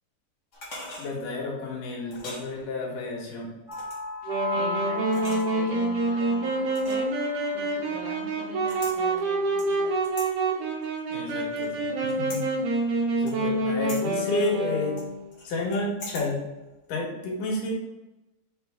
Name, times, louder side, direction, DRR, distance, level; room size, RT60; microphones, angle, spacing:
sound 1, 0.5-1.1 2.1-2.4 3.7-4.1 5.0-5.7 6.7-7.2 8.6-9.0 9.6-10.3 10.8-11.7 12.1-12.4 13.3-13.6 13.9-14.0 15.0-16.3 16.6-16.7, left 1 dB, 35° left, 1.4 m, -41 dB
voice 1, 1.0-3.5 11.1-12.4 13.2-15.0 15.4-16.4 16.9-17.7, left 2 dB, 85° left, -1 dB, 3.0 m, -31 dB
sound 2, 3.7-7.7 8.0-8.3, left 1 dB, 25° right, 1.3 m, -35 dB
Wind instrument woodwind instrument, 4.3-15.2, right 2 dB, 85° right, 2.9 m, -27 dB
voice 2, 4.5-9.9, left 1 dB, 60° left, -6 dB, 0.7 m, -42 dB
6.7 x 4.7 x 3.5 m, 1.0 s
omnidirectional pair, 3.6 m